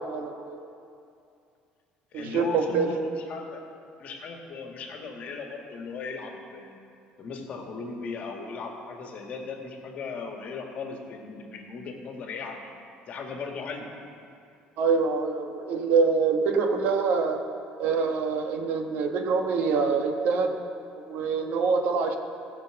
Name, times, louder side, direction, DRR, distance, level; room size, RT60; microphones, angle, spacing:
voice 1, 0.1-0.6 2.1-2.9 14.8-17.4 17.8-20.5 20.9-22.2, right 5 dB, 65° right, 4 dB, 1.2 m, -25 dB
voice 2, 2.1-3.6 4.0-6.7 7.2-12.7 13.1-13.9, left 4 dB, 45° left, 2 dB, 1.8 m, -37 dB
16.5 x 6.2 x 7.8 m, 2.5 s
cardioid pair, 155°, 3 cm